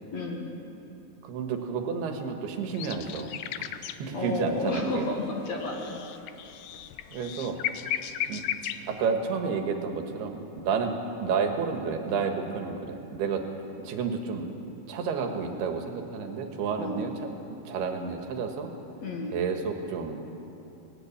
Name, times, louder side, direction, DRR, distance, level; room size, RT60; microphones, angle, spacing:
voice 1, 0.1-0.5 4.1-6.0 16.8-17.1 19.0-19.3, left 2 dB, 50° left, 0 dB, 2.4 m, -32 dB
voice 2, 1.2-3.3 4.0-5.1 7.1-7.6 8.3-8.4 8.9-10.9 11.2-13.4 13.8-14.5 14.9-18.7 19.3-20.2, right 5 dB, 85° right, 5 dB, 3.5 m, -30 dB
sound 1, 2.7-4.5 4.7-9.0, left 11 dB, 80° left, 1.9 m, -35 dB
19.0 x 17.0 x 8.6 m, 2.9 s
omnidirectional pair, 4.5 m